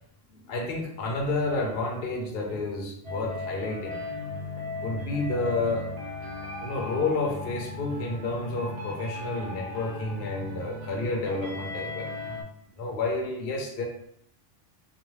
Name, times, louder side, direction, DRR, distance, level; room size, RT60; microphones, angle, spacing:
voice 1, 0.5-4.0 4.8-5.9 6.6-12.1 12.8-13.8, left 3 dB, 60° left, 0 dB, 0.7 m, -30 dB
sound 1, 3.0-12.4, left 2 dB, 50° right, 0.5 m, -37 dB
2.4 x 2.2 x 3.1 m, 0.72 s
omnidirectional pair, 1.2 m